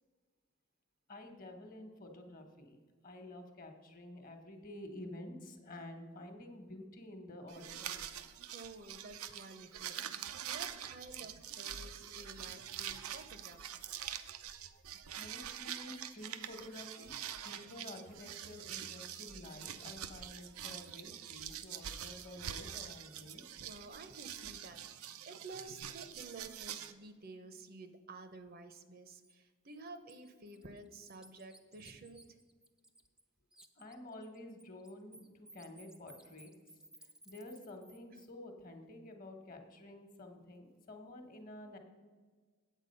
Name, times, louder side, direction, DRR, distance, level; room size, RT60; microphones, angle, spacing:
voice 1, 1.1-8.1 9.8-10.3 15.2-17.2 17.4-23.4 33.8-36.5 37.2-41.8, left 1 dB, 40° left, 6 dB, 1.2 m, -50 dB
sound 1, 7.5-26.9, right 10 dB, 90° right, 0.6 m, -45 dB
voice 2, 8.5-13.6 23.6-32.2, right 3 dB, 45° right, 9 dB, 0.7 m, -51 dB
Bird, 29.2-29.3 29.8-33.2 33.5-38.3, right 1 dB, 5° right, 0.4 m, -59 dB
8.4 x 8.2 x 5.4 m, 1.5 s
head